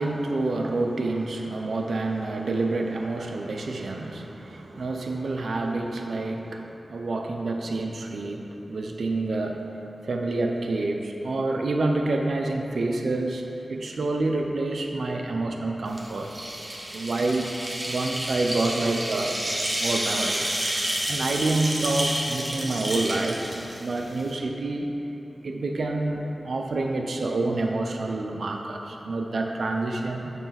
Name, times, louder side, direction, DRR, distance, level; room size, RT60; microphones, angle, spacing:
voice 1, 0.0-9.6 10.0-16.4 16.9-17.5 17.9-19.4 19.8-20.5 21.0-23.4 23.8-24.9 25.4-30.3, right 2 dB, 80° right, 2 dB, 0.5 m, -28 dB
sound 1, 15.9-24.3, right 1 dB, 40° right, 1.2 m, -30 dB
6.9 x 3.2 x 5.7 m, 3.0 s
cardioid pair, 45°, 0 cm